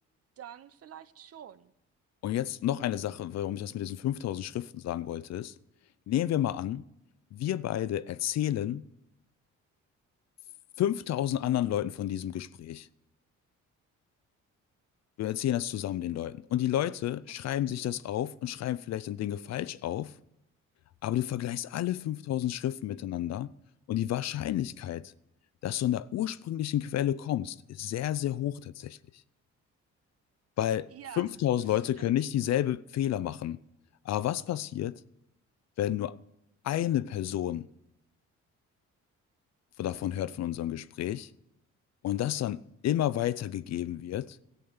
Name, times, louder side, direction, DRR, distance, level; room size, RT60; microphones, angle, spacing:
voice 1, 0.4-1.7 17.4-17.6 30.9-31.3 31.6-31.7 32.0-32.1, right 10 dB, 50° right, 0.7 m, -47 dB
voice 2, 2.2-5.5 6.1-6.8 7.3-8.8 10.8-12.9 15.2-20.1 21.0-23.5 23.9-25.1 25.6-29.0 30.6-30.9 31.2-33.6 34.0-35.0 35.8-36.2 36.6-37.7 39.8-41.3 42.0-44.4, left 12 dB, 60° left, 0.5 m, -31 dB
14.0 x 8.3 x 7.1 m
cardioid pair, 90°, 30 cm